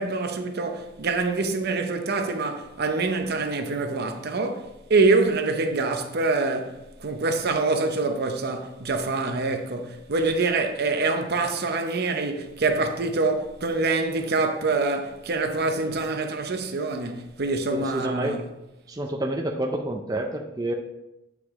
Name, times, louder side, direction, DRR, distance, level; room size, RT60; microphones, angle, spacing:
voice 1, 0.0-6.7 7.0-18.5, right 3 dB, 50° right, 0.7 m, -25 dB
voice 2, 17.7-18.3 18.9-20.7, right 1 dB, 20° right, 0.5 m, -28 dB
8.3 x 5.0 x 3.6 m
head